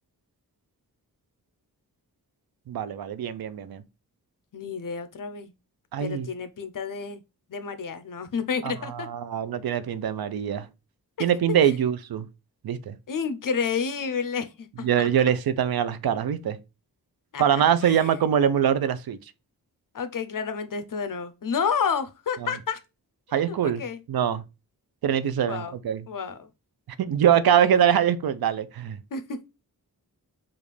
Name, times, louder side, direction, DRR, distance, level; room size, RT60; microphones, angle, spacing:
voice 1, 2.7-3.8 5.9-6.3 8.6-10.7 11.2-12.3 12.6-13.0 14.8-16.6 17.4-19.2 23.3-23.8 24.1-24.4 25.0-26.0 27.0-29.0, right 9 dB, 80° right, 0.5 m, -23 dB
voice 2, 4.5-5.5 6.0-7.2 7.5-9.1 13.1-15.1 17.3-18.1 19.9-22.8 23.3-24.0 25.4-25.8 26.1-26.5 29.1-29.4, left 6 dB, 60° left, 0.6 m, -30 dB
5.0 x 2.5 x 3.2 m
wide cardioid pair, 100°, 36 cm